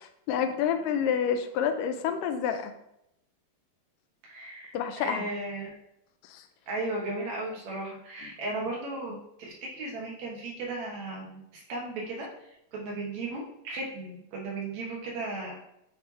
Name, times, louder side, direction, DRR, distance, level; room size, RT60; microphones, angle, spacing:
voice 1, 0.3-2.7 4.7-5.3 6.3-6.4, left 8 dB, 80° left, 8 dB, 2.0 m, -28 dB
voice 2, 4.2-5.7 6.7-12.3 12.7-15.6, right 2 dB, 60° right, -2 dB, 2.1 m, -36 dB
8.3 x 3.3 x 4.0 m, 0.80 s
omnidirectional pair, 4.1 m